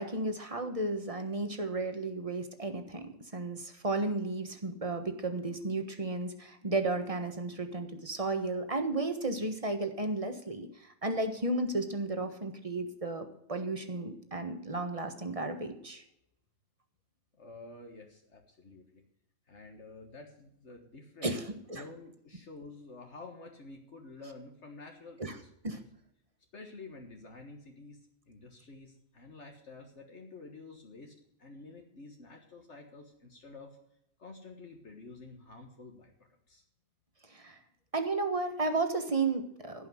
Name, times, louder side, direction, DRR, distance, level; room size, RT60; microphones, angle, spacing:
voice 1, 0.0-16.0 21.2-21.4 21.7-21.8 25.2-25.3 25.6-25.8 37.3-37.6 37.9-39.9, right 2 dB, 30° right, 6 dB, 1.4 m, -33 dB
voice 2, 17.4-19.0 19.5-21.4 21.7-25.8 26.5-33.8 34.2-36.6, left 3 dB, 65° left, 2 dB, 1.7 m, -50 dB
15.5 x 5.7 x 7.8 m, 0.78 s
omnidirectional pair, 1.3 m